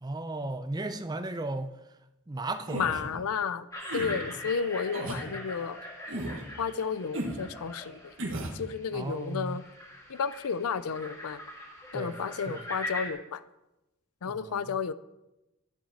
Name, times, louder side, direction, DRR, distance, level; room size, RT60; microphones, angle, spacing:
voice 1, 0.0-1.8 2.3-2.8 8.9-9.6 11.9-12.2 12.5-12.6 14.3-14.6, right 2 dB, 20° right, 10 dB, 0.5 m, -35 dB
voice 2, 2.7-3.7 3.9-5.8 6.6-8.1 8.5-9.6 10.1-11.4 11.9-13.4 14.2-14.9, left 6 dB, 85° left, 15 dB, 0.5 m, -32 dB
sound 1, 2.7-3.0 3.8-4.1 4.9-5.2 6.1-6.4 7.1-7.4 8.2-8.6, right 1 dB, 60° right, 1.4 m, -34 dB
sound 2, 3.7-13.1, left 1 dB, 15° left, 1.6 m, -42 dB
10.5 x 7.5 x 4.2 m, 0.95 s
head